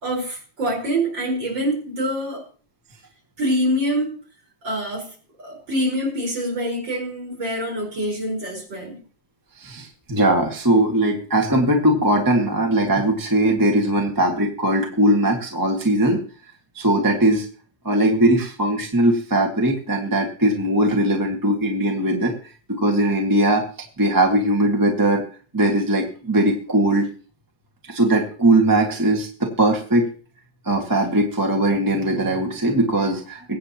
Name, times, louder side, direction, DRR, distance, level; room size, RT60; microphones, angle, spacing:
voice 1, 0.0-2.5 3.4-4.2 4.6-9.0, equal, 35° right, -1 dB, 5.2 m, -25 dB
voice 2, 9.6-16.2 16.7-17.4 17.8-22.3 22.7-23.6 24.0-25.2 25.5-27.1 27.9-30.1 30.6-33.6, right 1 dB, 10° right, 1 dB, 1.0 m, -20 dB
23.0 x 8.8 x 2.9 m, 0.39 s
omnidirectional pair, 3.5 m